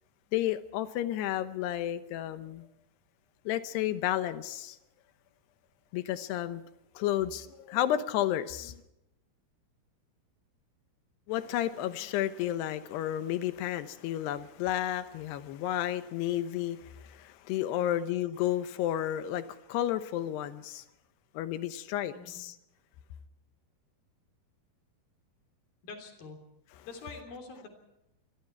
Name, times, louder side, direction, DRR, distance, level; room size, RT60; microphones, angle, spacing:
voice 1, 0.3-2.6 3.5-4.8 5.9-6.6 7.0-8.8 11.3-20.8 21.3-22.5, left 12 dB, 90° left, 11 dB, 3.1 m, -32 dB
voice 2, 25.8-26.4 26.9-27.7, left 4 dB, 65° left, 5 dB, 5.1 m, -45 dB
26.0 x 21.5 x 4.7 m, 0.86 s
omnidirectional pair, 4.6 m